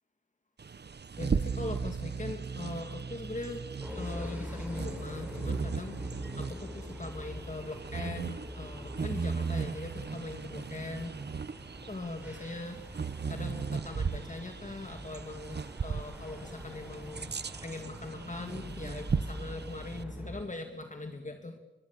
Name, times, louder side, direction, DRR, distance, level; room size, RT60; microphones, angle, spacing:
Bird vocalization bird call bird song, 0.6-20.0, right 5 dB, 55° right, 0.8 m, -37 dB
voice 1, 1.2-11.3 11.6-21.5, left 2 dB, 35° left, 5 dB, 2.2 m, -41 dB
sound 1, 3.8-20.4, equal, 10° right, 5.9 m, -44 dB
23.0 x 22.0 x 8.4 m, 1.1 s
wide cardioid pair, 90°, 21 cm